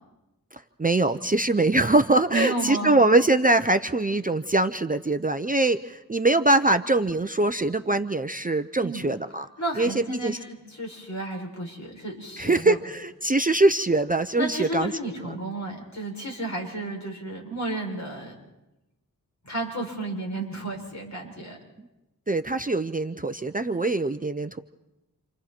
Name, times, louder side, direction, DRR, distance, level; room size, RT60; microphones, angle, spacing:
voice 1, 0.5-9.5 9.8-10.4 12.4-14.9 15.2-15.4 22.3-24.6, right 2 dB, 20° right, 9 dB, 0.7 m, -23 dB
voice 2, 2.3-3.0 8.8-9.0 9.6-12.8 14.4-18.3 19.4-21.6, right 2 dB, 50° left, -1 dB, 7.0 m, -32 dB
29.0 x 28.0 x 4.5 m, 0.96 s
wide cardioid pair, 80°, 37 cm